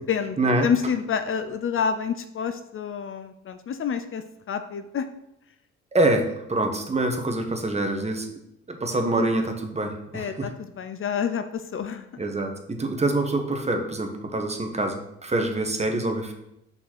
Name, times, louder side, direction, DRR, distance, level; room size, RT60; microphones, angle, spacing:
voice 1, 0.6-5.1 10.1-12.1, left 7 dB, 45° left, 9 dB, 0.5 m, -28 dB
voice 2, 5.9-8.3 8.7-10.5 12.2-16.3, right 2 dB, 20° right, 5 dB, 1.2 m, -25 dB
5.6 x 4.2 x 6.0 m, 0.81 s
cardioid pair, 90°, 31 cm